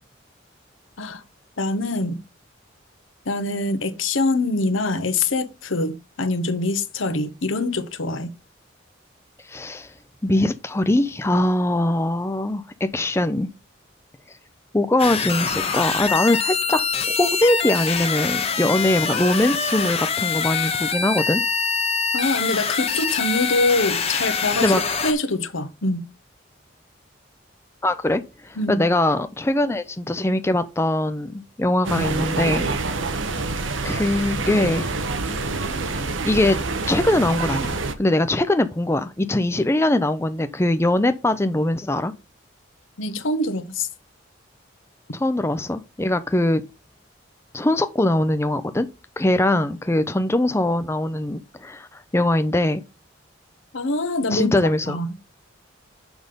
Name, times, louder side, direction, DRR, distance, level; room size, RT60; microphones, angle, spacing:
voice 1, 1.6-2.2 3.3-8.3 22.1-26.0 28.6-28.8 43.0-43.9 53.7-54.5 54.9-55.1, left 2 dB, 85° left, 1.1 m, -24 dB
voice 2, 9.4-9.9 10.2-12.6 12.9-13.5 14.7-16.8 17.1-21.4 24.4-24.8 27.8-32.7 33.8-34.9 36.2-36.6 36.9-42.1 45.1-46.6 47.5-48.9 49.2-52.8 54.3-55.0, left 1 dB, 15° left, 0.5 m, -22 dB
sound 1, 15.0-25.1, left 5 dB, 30° left, 0.9 m, -24 dB
sound 2, 31.8-37.9, right 3 dB, 80° right, 1.0 m, -26 dB
6.2 x 5.4 x 5.1 m
head